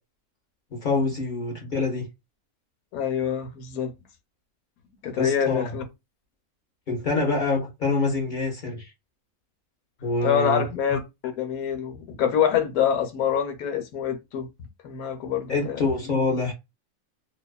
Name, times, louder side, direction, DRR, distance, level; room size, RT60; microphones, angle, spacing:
voice 1, 0.7-2.0 5.2-5.7 6.9-8.9 10.0-10.6 15.5-16.5, left 3 dB, 50° left, 0.6 m, -26 dB
voice 2, 2.9-3.9 5.0-5.8 10.2-11.0 11.3-14.5 14.8-15.9, left 8 dB, 80° left, 1.1 m, -25 dB
2.5 x 2.3 x 2.2 m
omnidirectional pair, 1.5 m